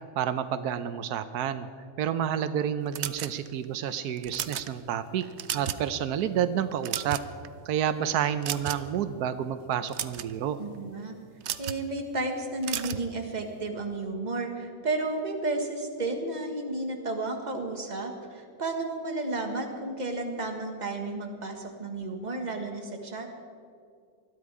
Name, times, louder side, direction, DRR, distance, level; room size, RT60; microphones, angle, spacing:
voice 1, 0.2-1.7 2.0-5.2 5.5-7.2 7.7-10.6, right 9 dB, 85° right, 12 dB, 1.2 m, -29 dB
sound 1, 2.9-3.6 4.2-4.7 5.2-5.9 6.2-6.4 6.7-7.5 8.4-9.0 9.7-10.3 11.4-11.8 12.6-13.1, right 10 dB, 60° right, 0.8 m, -33 dB
voice 2, 10.6-11.2 11.6-23.3, right 2 dB, 30° right, 3 dB, 1.6 m, -32 dB
20.5 x 13.0 x 4.8 m, 2.3 s
omnidirectional pair, 1.6 m